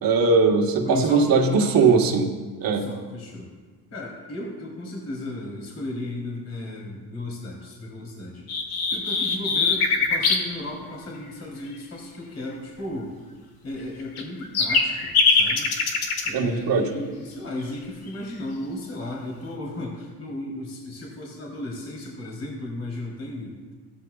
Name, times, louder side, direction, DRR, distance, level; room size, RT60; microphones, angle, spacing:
voice 1, 0.0-2.2 2.6-2.9 16.3-16.9, right 4 dB, 60° right, 3 dB, 1.5 m, -20 dB
voice 2, 0.8-2.0 2.7-3.5 3.9-8.5 8.9-13.1 13.6-15.7 16.2-23.6, left 1 dB, 40° left, -3 dB, 3.5 m, -35 dB
sound 1, 8.5-10.4 14.0-16.3, left 4 dB, 70° left, 1.6 m, -22 dB
15.5 x 13.0 x 2.4 m, 1.4 s
cardioid pair, 100°, 39 cm